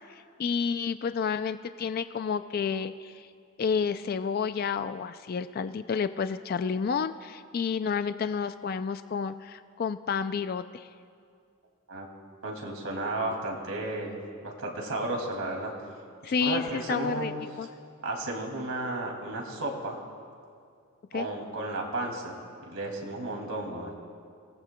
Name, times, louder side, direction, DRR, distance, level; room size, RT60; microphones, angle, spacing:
voice 1, 0.1-3.3 3.6-10.9 16.2-17.3 17.6-17.7 21.1-21.3, left 6 dB, 45° left, 11 dB, 0.3 m, -30 dB
voice 2, 12.4-15.7 16.2-17.3 18.0-20.0 21.1-22.4 22.7-23.9, right 2 dB, 75° right, 0 dB, 2.4 m, -33 dB
25.5 x 18.5 x 2.2 m, 2.2 s
head